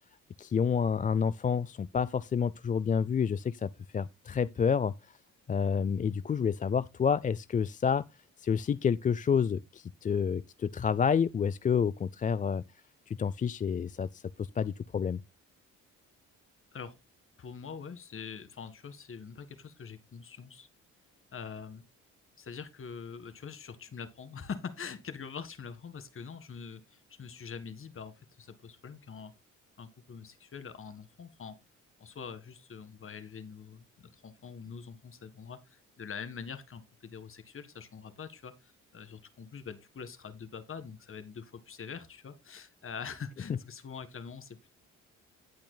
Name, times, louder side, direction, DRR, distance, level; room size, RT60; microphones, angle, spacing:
voice 1, 0.4-5.2 5.5-8.0 8.4-12.6 13.1-15.2 43.5-43.6, left 7 dB, 25° left, 0.4 m, -29 dB
voice 2, 17.4-20.7 21.3-21.8 22.4-29.3 29.8-31.5 32.0-44.7, left 6 dB, 45° left, 1.8 m, -44 dB
17.5 x 6.0 x 2.2 m
cardioid pair, 90°, 30 cm